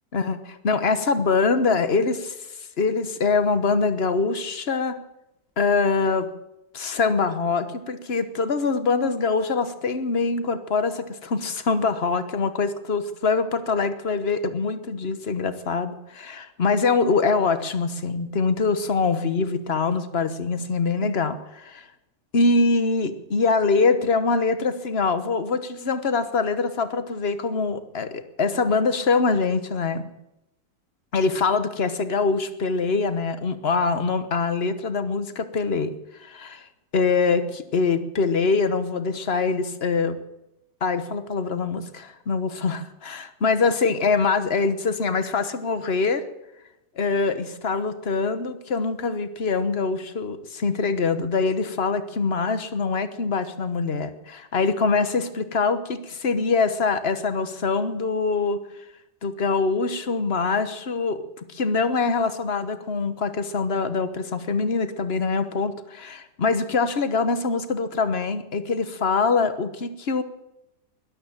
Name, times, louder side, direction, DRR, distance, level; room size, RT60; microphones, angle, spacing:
voice 1, 0.1-2.3 2.8-5.0 5.6-6.3 6.7-21.8 22.3-30.1 31.1-35.9 36.2-36.6 36.9-40.2 40.8-42.8 43.1-46.2 47.0-58.6 59.2-61.2 61.5-70.2, left 4 dB, 40° left, 11 dB, 1.3 m, -24 dB
13.0 x 12.0 x 8.9 m, 0.87 s
omnidirectional pair, 1.9 m